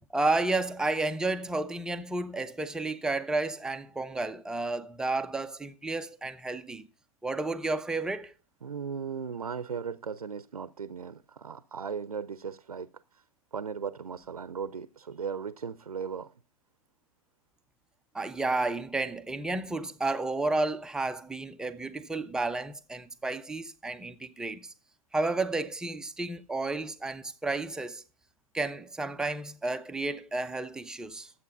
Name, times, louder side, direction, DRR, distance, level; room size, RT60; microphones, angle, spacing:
voice 1, 0.1-6.9 7.2-8.3 18.1-24.7 25.1-28.0 28.5-31.3, right 2 dB, 5° right, 0.4 m, -31 dB
voice 2, 8.6-13.2 13.5-16.3, right 6 dB, 80° right, 0.6 m, -37 dB
11.0 x 7.9 x 5.4 m
figure-of-eight pair, 120°, 19 cm